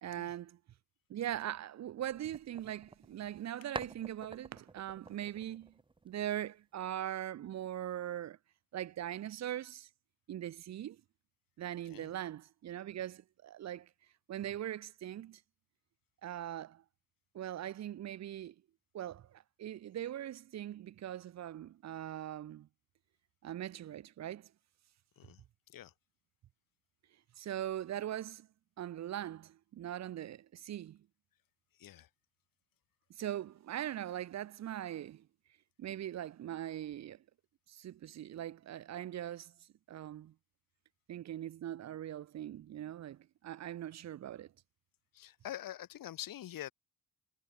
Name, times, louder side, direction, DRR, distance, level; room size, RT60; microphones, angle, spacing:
voice 1, 0.0-0.6 1.1-5.7 6.0-8.4 8.7-9.9 10.3-11.0 11.6-13.9 14.3-15.4 16.2-16.8 17.3-18.5 18.9-22.7 23.4-24.5 27.4-28.5 28.8-31.0 33.1-35.3 35.8-37.2 37.7-39.5 39.9-40.3 41.1-44.5, right 11 dB, 55° right, 0.6 m, -41 dB
sound 1, 2.1-3.5 3.7-6.4, right 3 dB, 15° right, 1.0 m, -48 dB
voice 2, 45.1-46.7, left 12 dB, 90° left, 2.7 m, -45 dB
cardioid pair, 115°, 33 cm